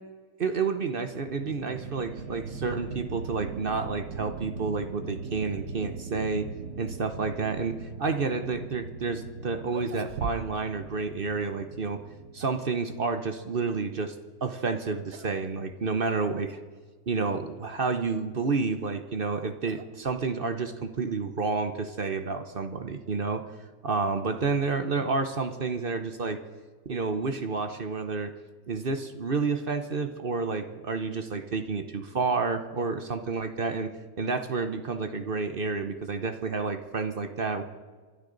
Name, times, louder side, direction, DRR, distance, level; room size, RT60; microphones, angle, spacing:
voice 1, 0.4-6.5 6.8-12.0 12.3-14.1 14.4-16.6 17.1-23.4 23.8-26.4 26.9-28.3 28.7-33.9 34.2-37.6, right 4 dB, 45° right, 8 dB, 0.9 m, -30 dB
sound 1, 1.0-13.3, right 4 dB, 60° right, 1.7 m, -41 dB
sound 2, 9.1-9.2 9.6-10.8 11.0-11.1 12.0-12.7 14.5-14.8 15.1-15.4 15.7-15.8 16.6-16.7 18.5-20.6, right 8 dB, 90° right, 1.4 m, -42 dB
26.5 x 12.0 x 3.9 m, 1.5 s
omnidirectional pair, 1.6 m